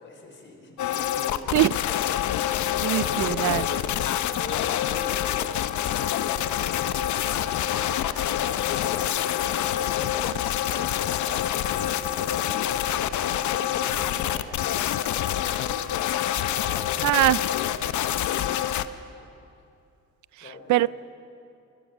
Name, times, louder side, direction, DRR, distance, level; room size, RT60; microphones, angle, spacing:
voice 1, 0.0-3.8 4.3-18.5 20.4-20.9, left 3 dB, 40° left, 2 dB, 4.7 m, -43 dB
sound 1, 0.8-18.9, left 11 dB, 75° left, 0.8 m, -26 dB
voice 2, 2.8-3.6 17.0-17.4 20.4-20.9, right 17 dB, 75° right, 19 dB, 0.4 m, -22 dB
22.0 x 21.0 x 6.2 m, 2.6 s
cardioid pair, 90°, 30 cm